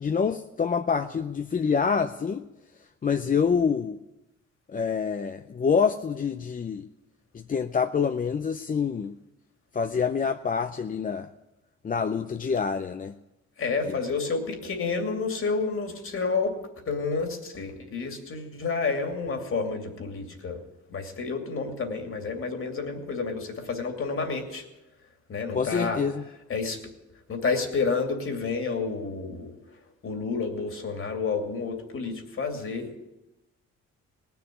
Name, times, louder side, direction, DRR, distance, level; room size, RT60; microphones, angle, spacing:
voice 1, 0.0-2.4 3.0-4.0 4.7-6.8 7.3-9.1 9.7-11.3 11.8-13.1 13.8-13.9 25.5-26.2, left 6 dB, 30° left, 8 dB, 0.6 m, -26 dB
voice 2, 13.6-20.6 20.9-24.6 25.3-26.0 26.5-26.8 27.3-29.5 30.0-33.0, left 4 dB, 45° left, 4 dB, 2.7 m, -30 dB
18.5 x 7.0 x 9.9 m, 0.99 s
cardioid pair, 90°, 30 cm